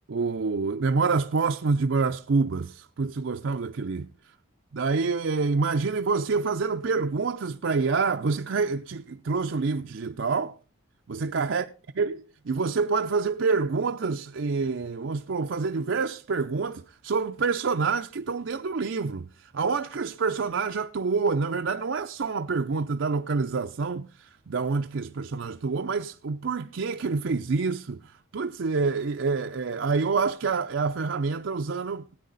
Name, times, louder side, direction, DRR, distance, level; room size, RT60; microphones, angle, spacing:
voice 1, 0.1-4.1 4.7-10.6 11.1-11.6 12.0-12.1 12.5-32.2, right 4 dB, 65° right, 0.5 m, -27 dB
17.0 x 9.3 x 3.9 m
head